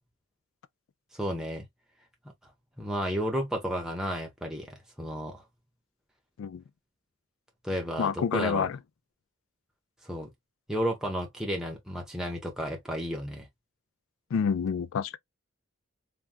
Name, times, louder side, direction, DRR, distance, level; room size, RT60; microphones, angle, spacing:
voice 1, 1.1-1.6 2.8-5.4 7.6-8.7 10.0-10.3 10.7-13.5, equal, 5° right, 0.7 m, -32 dB
voice 2, 8.0-8.8 14.3-15.2, left 6 dB, 75° left, 0.3 m, -28 dB
3.5 x 2.2 x 2.5 m
head